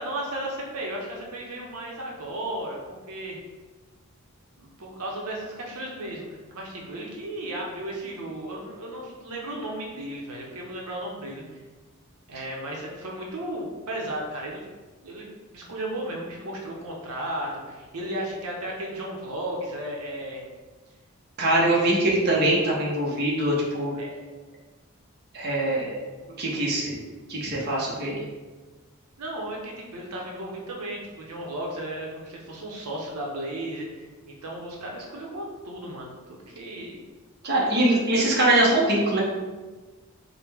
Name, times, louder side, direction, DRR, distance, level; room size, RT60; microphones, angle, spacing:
voice 1, 0.0-3.4 4.6-11.4 12.3-14.6 15.0-20.4 21.5-22.0 24.0-24.2 29.2-37.0 37.8-37.9, right 1 dB, 90° right, -1 dB, 0.8 m, -35 dB
voice 2, 21.4-23.9 25.3-26.0 26.4-27.0 27.3-28.2 37.4-39.2, right 1 dB, 50° right, -4 dB, 0.8 m, -23 dB
4.9 x 2.2 x 3.4 m, 1.3 s
head